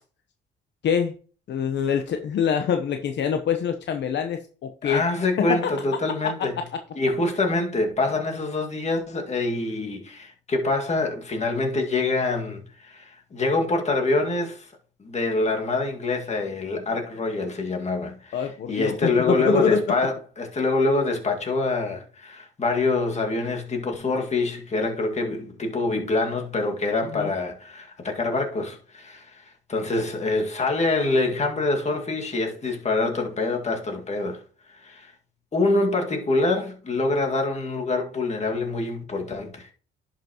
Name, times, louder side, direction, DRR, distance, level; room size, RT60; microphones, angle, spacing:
voice 1, 0.8-1.1 1.5-5.0 5.4-5.6 18.3-19.8 27.1-27.3, left 7 dB, 65° left, 0.9 m, -25 dB
voice 2, 4.8-6.5 7.0-14.7 15.0-34.4 34.7-35.1 35.5-39.7, left 2 dB, 35° left, 2.0 m, -25 dB
11.0 x 5.9 x 2.9 m
cardioid pair, 90°, 20 cm